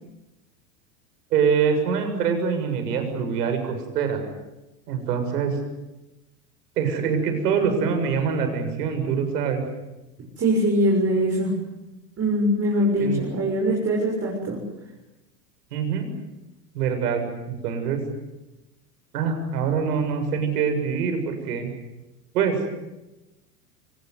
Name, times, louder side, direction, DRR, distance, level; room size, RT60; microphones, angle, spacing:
voice 1, 1.3-4.2 4.9-5.6 6.8-9.6 13.0-13.2 15.7-16.1 16.7-18.0 19.1-21.7 22.3-22.6, right 6 dB, 75° right, 6 dB, 7.1 m, -24 dB
voice 2, 10.4-11.5 12.2-14.6, equal, 30° right, -2 dB, 7.0 m, -22 dB
24.5 x 20.0 x 9.7 m, 0.99 s
hypercardioid pair, 100°, 48 cm